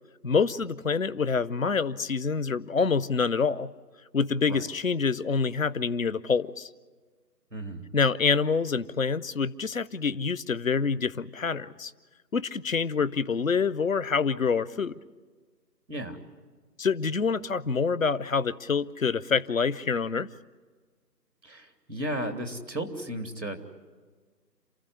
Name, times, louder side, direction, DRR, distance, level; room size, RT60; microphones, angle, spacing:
voice 1, 0.2-3.7 4.1-6.7 7.9-11.9 12.3-15.0 16.8-20.3, left 5 dB, 55° left, 17 dB, 0.6 m, -26 dB
voice 2, 7.5-7.8 15.9-16.2 21.4-23.6, right 1 dB, 80° right, 5 dB, 3.2 m, -34 dB
28.5 x 14.5 x 9.8 m, 1.5 s
figure-of-eight pair, 160°, 50 cm